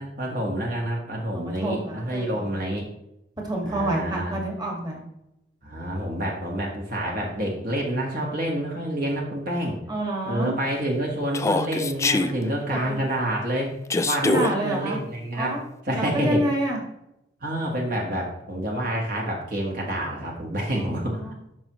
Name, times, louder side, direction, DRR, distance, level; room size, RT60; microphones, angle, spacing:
voice 1, 0.0-2.9 3.7-4.3 5.6-9.8 10.3-13.7 14.0-15.5 15.9-16.4 17.4-21.2, right 1 dB, 50° right, -1 dB, 1.6 m, -28 dB
voice 2, 1.3-2.5 3.4-5.0 9.9-10.6 12.7-13.0 14.2-15.0 15.4-15.6 15.9-16.8 20.7-21.3, right 1 dB, 25° right, -1 dB, 1.8 m, -28 dB
Human voice, 11.3-12.3 13.9-14.5, left 2 dB, 15° left, 0.4 m, -23 dB
13.0 x 6.0 x 3.1 m, 0.84 s
head